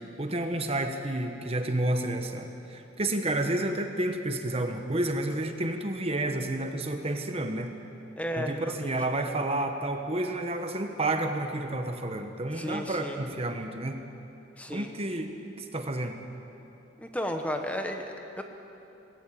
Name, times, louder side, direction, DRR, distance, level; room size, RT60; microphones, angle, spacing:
voice 1, 0.2-7.7 8.4-14.0 14.7-16.1, right 1 dB, 30° right, 6 dB, 1.2 m, -30 dB
voice 2, 8.2-9.3 12.5-13.2 14.6-14.9 17.0-18.4, equal, 5° left, 4 dB, 1.2 m, -34 dB
19.5 x 17.0 x 8.6 m, 2.9 s
head